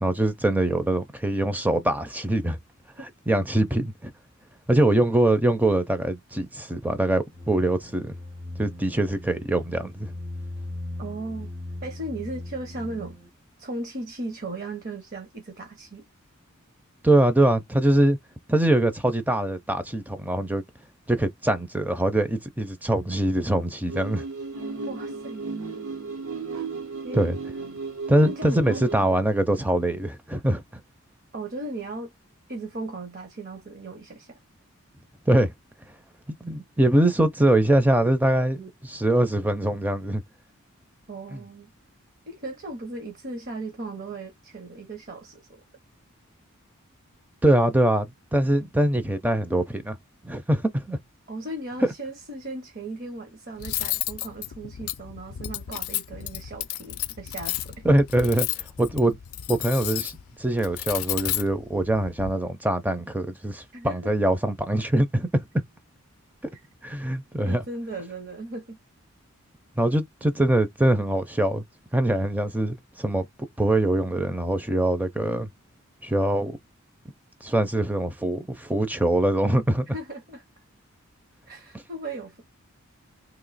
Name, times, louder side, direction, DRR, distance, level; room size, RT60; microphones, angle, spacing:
voice 1, 0.0-2.6 3.3-4.1 4.7-8.1 8.6-10.1 17.0-18.2 18.5-20.6 21.1-24.2 27.1-27.4 28.1-30.8 35.3-35.5 36.4-40.2 41.3-41.4 47.4-50.0 50.2-51.0 57.8-58.5 58.8-59.2 59.5-60.1 60.4-65.4 66.8-67.6 69.8-71.6 71.9-73.2 73.6-75.5 76.0-76.6 77.4-79.9, right 1 dB, 10° right, 0.4 m, -23 dB
sound 1, 7.3-13.3, left 1 dB, 65° right, 1.5 m, -38 dB
voice 2, 11.0-11.5 11.8-13.2 13.6-16.1 24.9-25.4 27.0-27.4 28.2-29.1 31.3-32.1 32.5-34.4 41.1-41.7 42.3-45.6 51.3-57.9 63.7-64.1 67.5-68.8 79.9-80.4 81.5-82.4, right 2 dB, 45° right, 0.7 m, -36 dB
sound 2, 23.9-29.1, right 4 dB, 90° right, 1.0 m, -34 dB
Cutlery silverware, 53.6-62.3, left 14 dB, 85° left, 0.4 m, -32 dB
3.0 x 2.6 x 4.0 m
head